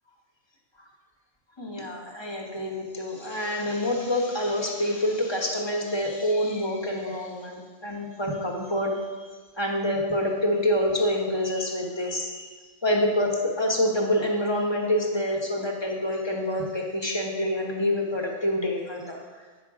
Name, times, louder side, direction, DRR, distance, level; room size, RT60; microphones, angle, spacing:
voice 1, 1.6-12.5 12.8-13.3 13.6-19.4, left 1 dB, 20° left, 0 dB, 1.1 m, -27 dB
9.1 x 5.9 x 4.8 m, 1.4 s
omnidirectional pair, 1.3 m